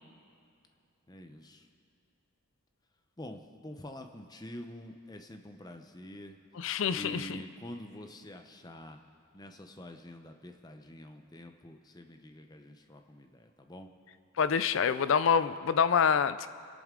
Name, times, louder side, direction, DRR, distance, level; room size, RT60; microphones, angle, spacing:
voice 1, 1.1-1.7 3.2-6.4 6.8-9.0 9.3-13.9, left 1 dB, 20° left, 5 dB, 0.7 m, -46 dB
voice 2, 6.6-7.4 14.4-16.5, left 7 dB, 60° left, 14 dB, 0.4 m, -26 dB
29.0 x 10.5 x 3.8 m, 2.7 s
head